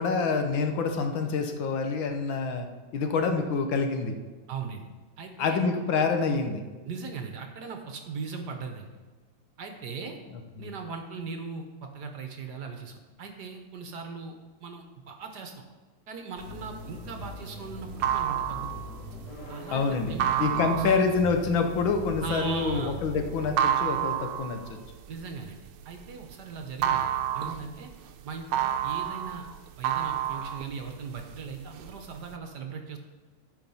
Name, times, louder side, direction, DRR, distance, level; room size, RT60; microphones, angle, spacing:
voice 1, 0.0-2.7 2.9-4.2 5.4-6.6 10.6-10.7 19.7-20.1 20.4-24.8, left 4 dB, 70° left, 5 dB, 1.6 m, -27 dB
voice 2, 4.5-4.9 5.2-5.6 6.8-8.9 9.6-10.2 10.6-15.6 16.1-18.9 19.5-21.1 22.2-23.0 25.1-27.9 28.2-29.5 29.8-33.0, right 5 dB, 60° right, 4 dB, 1.4 m, -39 dB
sound 1, 16.4-23.5, left 3 dB, 55° left, 2.1 m, -42 dB
sound 2, 16.5-26.3 26.6-31.4 31.7-32.3, right 10 dB, 80° right, 1.5 m, -29 dB
12.5 x 5.0 x 5.5 m, 1.3 s
omnidirectional pair, 2.3 m